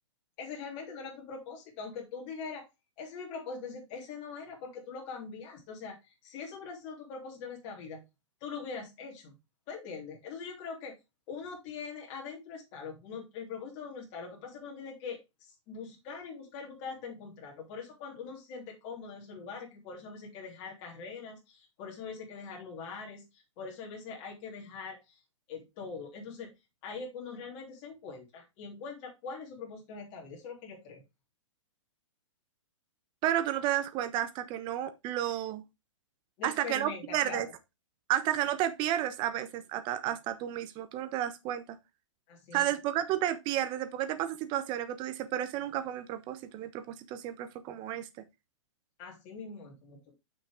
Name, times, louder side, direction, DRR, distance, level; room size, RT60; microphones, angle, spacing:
voice 1, 0.4-2.7 3.0-8.0 8.4-9.3 9.7-11.0 11.3-25.2 25.5-26.5 26.8-31.0 36.4-37.5 42.3-42.7 49.0-50.1, left 5 dB, 35° left, 3.3 m, -42 dB
voice 2, 33.2-35.6 36.4-37.5 38.1-41.6 42.5-48.1, right 12 dB, 30° right, 1.1 m, -32 dB
7.5 x 6.1 x 3.6 m
hypercardioid pair, 140°, 16 cm